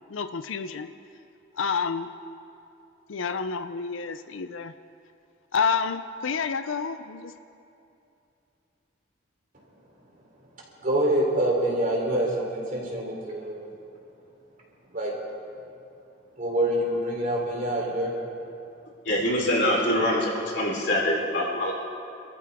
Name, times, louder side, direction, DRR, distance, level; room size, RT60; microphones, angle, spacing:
voice 1, 0.1-0.9 1.6-2.1 3.1-4.7 5.5-7.3, left 5 dB, 85° left, 10 dB, 0.6 m, -29 dB
voice 2, 10.8-13.7 14.9-15.1 16.4-18.1, right 1 dB, 45° right, -2 dB, 3.5 m, -26 dB
voice 3, 19.1-21.7, left 1 dB, 60° left, -4 dB, 4.0 m, -24 dB
27.0 x 14.0 x 3.6 m, 2.7 s
head